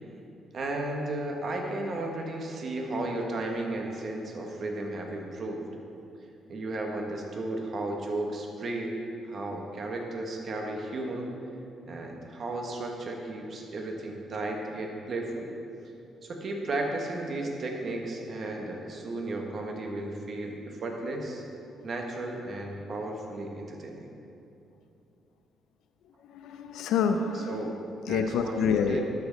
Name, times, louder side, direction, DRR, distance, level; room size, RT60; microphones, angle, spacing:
voice 1, 0.5-5.6 6.5-8.9 9.3-11.3 11.9-15.5 16.2-21.4 21.8-24.1 27.3-27.8 28.1-28.6 28.9-29.0, right 2 dB, 50° right, 1 dB, 1.3 m, -34 dB
voice 2, 26.3-27.6 28.1-29.0, left 6 dB, 85° left, 7 dB, 0.4 m, -27 dB
12.5 x 5.1 x 3.9 m, 2.7 s
cardioid pair, 90°, 0 cm